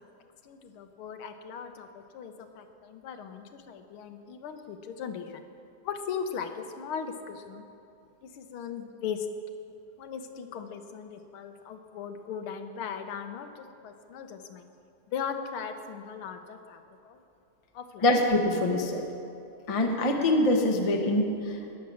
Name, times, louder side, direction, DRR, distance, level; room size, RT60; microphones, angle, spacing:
voice 1, 0.4-5.4 5.8-7.6 8.2-9.3 10.0-14.7 15.1-17.2 17.7-18.1, left 7 dB, 75° left, 7 dB, 1.7 m, -38 dB
voice 2, 18.0-19.0 19.7-21.8, left 1 dB, 30° left, 2 dB, 0.7 m, -24 dB
20.0 x 7.3 x 6.3 m, 2.7 s
omnidirectional pair, 2.4 m